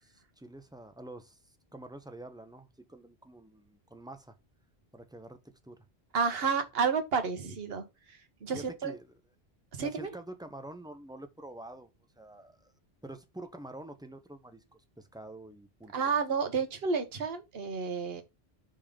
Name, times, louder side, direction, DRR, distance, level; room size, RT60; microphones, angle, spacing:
voice 1, 0.0-4.4 4.9-5.4 5.6-5.8 8.5-9.1 9.8-11.9 12.2-12.7 13.0-16.2, right 1 dB, 5° right, 0.5 m, -47 dB
voice 2, 6.1-8.9 9.7-10.1 15.9-18.2, right 5 dB, 70° right, 1.2 m, -31 dB
5.3 x 3.6 x 5.0 m
omnidirectional pair, 1.1 m